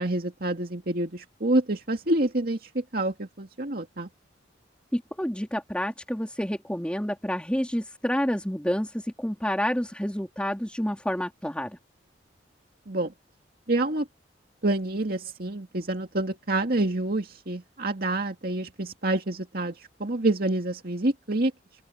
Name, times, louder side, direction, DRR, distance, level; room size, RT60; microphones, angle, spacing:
voice 1, 0.0-4.1 12.9-13.1 13.7-14.1 14.6-21.5, right 2 dB, 55° right, 2.2 m, -27 dB
voice 2, 4.9-11.8, equal, 5° left, 3.4 m, -29 dB
open air
head